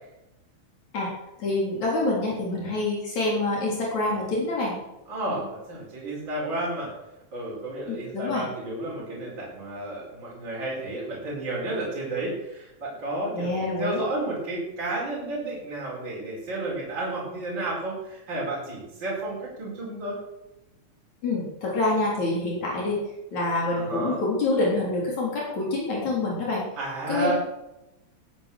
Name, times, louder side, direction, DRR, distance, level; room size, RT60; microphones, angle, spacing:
voice 1, 1.4-4.8 5.3-5.4 7.9-8.4 13.3-14.0 21.2-23.0 23.3-26.6 27.1-27.3, left 2 dB, 70° left, -4 dB, 5.0 m, -26 dB
voice 2, 5.1-6.9 7.3-20.2 23.7-24.2 26.8-27.3, right 2 dB, 40° right, -5 dB, 5.4 m, -32 dB
19.5 x 9.7 x 6.6 m, 0.96 s
omnidirectional pair, 3.4 m